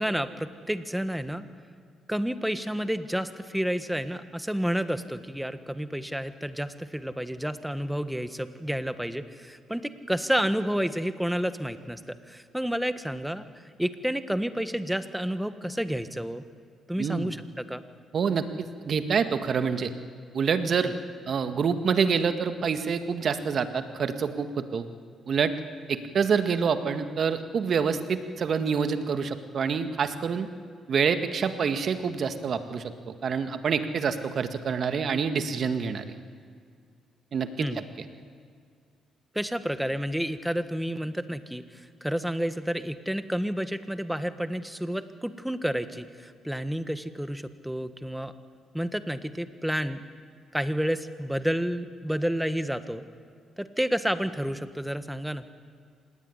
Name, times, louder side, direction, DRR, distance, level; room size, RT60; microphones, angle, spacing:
voice 1, 0.0-1.5 2.1-13.5 13.8-16.4 16.9-17.8 20.8-20.9 37.6-37.8 39.3-48.3 48.7-50.0 50.5-53.0 53.6-55.4, equal, 5° right, 11 dB, 1.5 m, -30 dB
voice 2, 17.0-17.3 18.1-19.9 20.3-20.9 21.3-24.9 25.3-25.5 25.9-30.5 30.9-36.1 37.3-37.7, right 6 dB, 55° right, 9 dB, 1.8 m, -27 dB
25.5 x 19.0 x 9.8 m, 2.1 s
cardioid pair, 90°, 0 cm